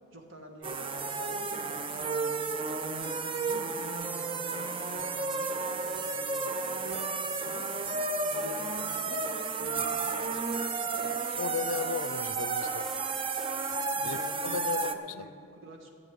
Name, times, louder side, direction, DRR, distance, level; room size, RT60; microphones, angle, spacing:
voice 1, 0.1-7.0 7.4-9.2 9.6-11.7 14.0-15.9, right 1 dB, 75° right, 2 dB, 1.6 m, -47 dB
sound 1, 0.6-14.9, right 4 dB, 25° right, 0.4 m, -32 dB
voice 2, 11.4-12.9 14.0-15.3, left 5 dB, 85° left, 15 dB, 0.5 m, -35 dB
13.5 x 7.5 x 7.0 m, 2.4 s
head